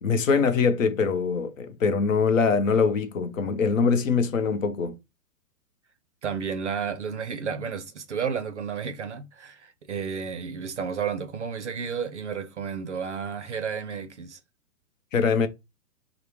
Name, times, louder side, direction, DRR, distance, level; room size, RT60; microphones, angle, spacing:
voice 1, 0.0-5.0 15.1-15.5, left 5 dB, 55° left, 0.6 m, -23 dB
voice 2, 6.2-14.4, right 6 dB, 50° right, 0.5 m, -32 dB
4.4 x 2.1 x 3.3 m
hypercardioid pair, 175°, 47 cm